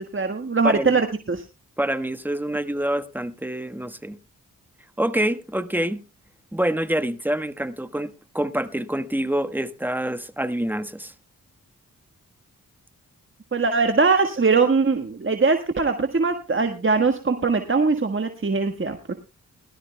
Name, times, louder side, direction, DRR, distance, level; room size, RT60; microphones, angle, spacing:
voice 1, 0.0-1.4 13.5-19.2, right 4 dB, 35° right, 1.5 m, -21 dB
voice 2, 0.6-1.0 1.8-4.2 5.0-6.0 6.5-11.1, right 1 dB, 5° right, 1.3 m, -26 dB
20.5 x 12.5 x 2.2 m
cardioid pair, 45°, 35 cm